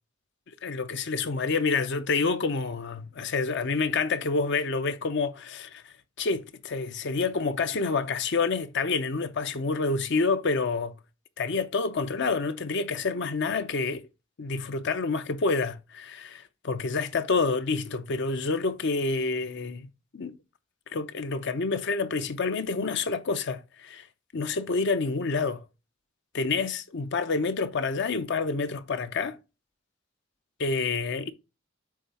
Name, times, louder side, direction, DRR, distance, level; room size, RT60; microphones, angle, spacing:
voice 1, 0.6-11.0 11.4-14.0 14.4-20.4 20.9-24.1 24.3-25.6 26.3-29.4 30.6-31.3, left 4 dB, 60° left, 0.7 m, -28 dB
8.4 x 3.4 x 4.2 m
head